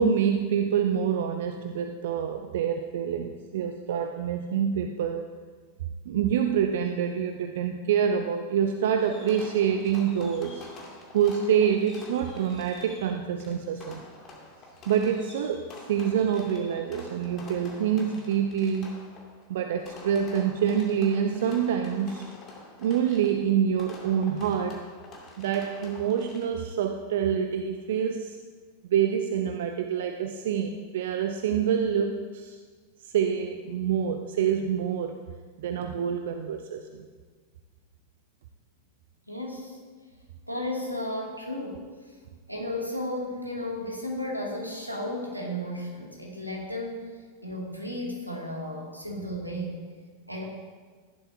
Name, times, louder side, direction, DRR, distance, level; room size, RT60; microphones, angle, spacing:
voice 1, 0.0-5.3 6.1-10.7 11.1-14.0 14.9-19.0 19.5-22.2 22.8-24.9 25.4-28.4 28.8-32.6 33.0-35.2 35.6-36.8, right 8 dB, 55° right, 6 dB, 0.6 m, -26 dB
Fireworks, 9.0-26.7, left 2 dB, 30° left, 2.4 m, -47 dB
voice 2, 39.3-39.8 40.5-41.8 42.5-47.1 47.4-49.8 50.3-50.4, left 1 dB, 90° right, -2 dB, 2.3 m, -34 dB
15.0 x 11.5 x 2.7 m, 1.5 s
figure-of-eight pair, 90°, 0 cm